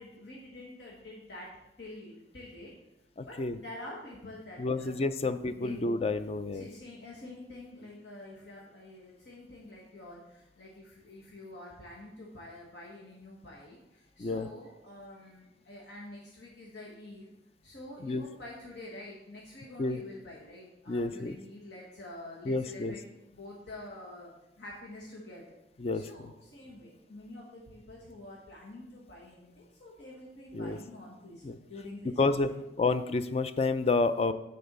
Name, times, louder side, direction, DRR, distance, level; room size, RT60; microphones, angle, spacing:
voice 1, 0.0-1.5 1.8-2.7 3.3-3.4 3.6-5.9 6.5-10.2 10.6-13.8 14.2-17.3 17.6-23.0 23.3-24.3 24.6-25.6 25.9-29.5 29.8-32.6, left 1 dB, 75° left, -3 dB, 1.4 m, -47 dB
voice 2, 3.2-3.6 4.6-6.7 14.2-14.5 18.0-18.2 19.8-20.0 20.9-21.4 22.5-22.9 25.8-26.1 30.5-30.8 31.4-31.6 32.2-32.5 32.8-34.3, left 3 dB, 35° left, 11 dB, 0.4 m, -29 dB
6.9 x 4.3 x 6.7 m, 0.90 s
head